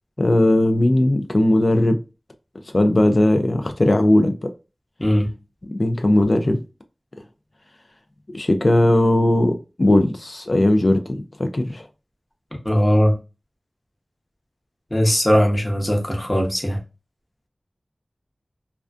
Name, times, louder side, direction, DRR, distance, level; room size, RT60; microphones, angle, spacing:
voice 1, 0.2-2.0 2.7-4.5 5.7-6.6 8.3-11.9, left 1 dB, 50° left, 0.3 m, -18 dB
voice 2, 12.6-13.1 14.9-16.8, equal, 30° left, 0.8 m, -19 dB
2.4 x 2.2 x 2.4 m
wide cardioid pair, 40°, 0 cm